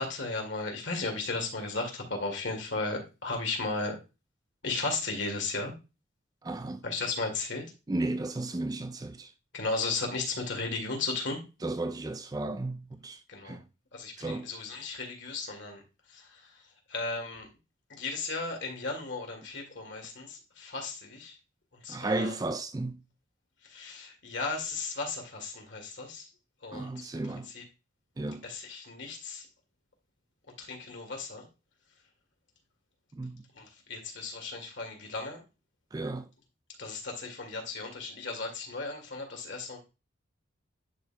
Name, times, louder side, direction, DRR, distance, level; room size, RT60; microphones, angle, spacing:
voice 1, 0.0-4.0 4.6-5.7 6.8-7.7 9.5-11.4 13.3-13.6 13.9-17.5 17.9-21.4 21.7-22.4 23.6-26.3 26.6-27.1 27.4-27.6 28.4-29.5 30.6-31.5 33.5-35.4 36.8-39.8, left 3 dB, 65° left, 2.0 m, -35 dB
voice 2, 6.4-6.8 7.9-9.3 11.6-13.2 13.4-13.6 14.2-14.5 21.9-23.0 26.7-27.5 28.2-28.4 33.1-33.4 35.9-36.2, right 2 dB, 20° right, 0.3 m, -34 dB
11.0 x 4.3 x 2.2 m
head